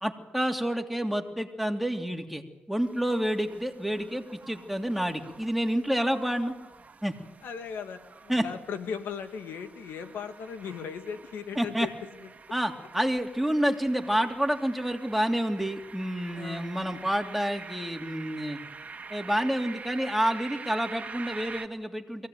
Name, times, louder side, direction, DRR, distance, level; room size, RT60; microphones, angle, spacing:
voice 1, 0.0-2.4 2.7-6.6 7.0-7.1 8.3-8.5 11.5-11.9 12.5-18.6 19.1-22.3, equal, ahead, 3 dB, 3.1 m, -29 dB
sound 1, 2.8-21.7, right 5 dB, 45° right, 1.8 m, -46 dB
voice 2, 7.4-11.9 16.3-16.7, left 6 dB, 85° left, 7 dB, 1.8 m, -37 dB
23.5 x 16.5 x 9.3 m, 1.0 s
cardioid pair, 60°, 3 cm